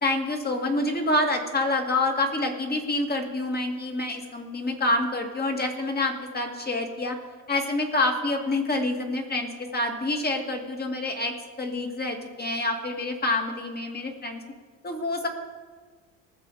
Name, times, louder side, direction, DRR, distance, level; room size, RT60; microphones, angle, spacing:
voice 1, 0.0-7.2 7.5-14.4 14.8-15.3, left 2 dB, 25° left, 3 dB, 2.2 m, -27 dB
19.5 x 6.9 x 4.9 m, 1.4 s
supercardioid pair, 90°, 39 cm